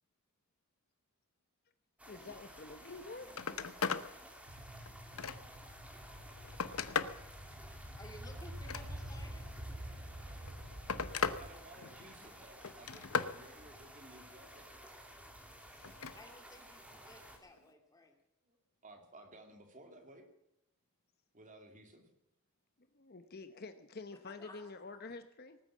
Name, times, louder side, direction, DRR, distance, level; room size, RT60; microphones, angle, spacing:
voice 1, 2.0-3.3 15.7-16.0 22.8-25.6, left 3 dB, 45° left, 10 dB, 0.9 m, -48 dB
sound 1, 2.0-17.4, equal, 5° right, 2.5 m, -54 dB
Telephone, 2.9-3.0 3.3-4.1 4.6-5.7 6.2-7.2 8.5-9.3 10.3-11.4 11.8-12.2 12.6-13.4 15.8-16.2 17.6-17.7, left 5 dB, 80° left, 0.9 m, -37 dB
sound 2, 4.5-11.5, equal, 90° right, 3.8 m, -47 dB
voice 2, 8.0-9.7 16.1-18.1 24.1-25.0, left 1 dB, 15° left, 3 dB, 2.8 m, -57 dB
voice 3, 11.4-14.7 18.4-18.6 18.8-20.3 21.3-22.1, right 1 dB, 35° right, 5 dB, 2.6 m, -56 dB
19.0 x 9.2 x 7.4 m, 0.82 s
head